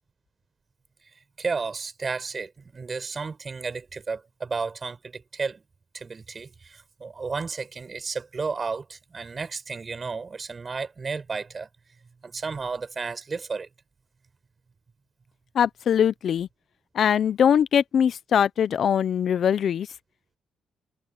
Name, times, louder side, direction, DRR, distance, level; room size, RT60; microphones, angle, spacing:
voice 1, 1.4-5.6 5.9-11.7 12.2-13.7, right 4 dB, 35° right, 5.5 m, -33 dB
voice 2, 15.5-16.5 16.9-19.9, left 8 dB, 60° left, 0.7 m, -22 dB
cardioid pair, 90°, 0 cm